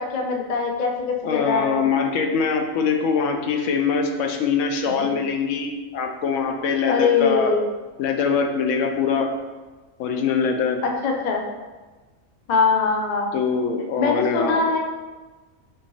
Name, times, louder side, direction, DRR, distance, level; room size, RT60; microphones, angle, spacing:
voice 1, 0.0-1.9 5.0-5.2 6.9-7.6 10.8-11.4 12.5-13.3 14.0-14.8, left 4 dB, 50° left, 1 dB, 0.5 m, -22 dB
voice 2, 1.2-7.5 8.0-9.3 10.0-10.8 13.3-14.6, left 5 dB, 70° left, 4 dB, 0.9 m, -23 dB
6.2 x 2.7 x 3.0 m, 1.3 s
omnidirectional pair, 1.4 m